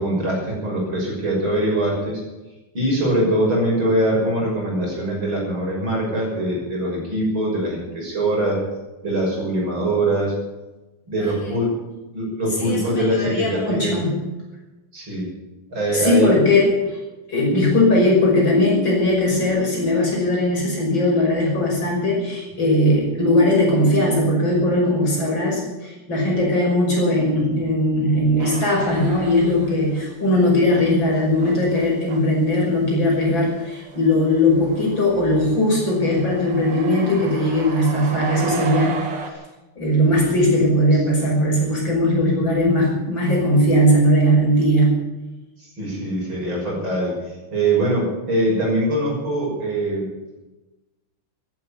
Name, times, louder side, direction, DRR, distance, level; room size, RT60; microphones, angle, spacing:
voice 1, 0.0-2.2 2.7-8.6 9.0-10.4 11.1-11.7 12.1-13.9 14.9-15.3 15.7-16.3 40.9-41.1 45.6-50.1, right 1 dB, 65° right, -2 dB, 7.1 m, -22 dB
voice 2, 12.6-14.1 15.9-17.0 17.3-39.0 39.8-45.0, left 1 dB, 60° left, -2 dB, 6.7 m, -19 dB
sound 1, 28.4-30.1 30.3-39.3, right 5 dB, 85° right, 2.8 m, -35 dB
14.0 x 12.5 x 8.5 m, 1.1 s
omnidirectional pair, 2.4 m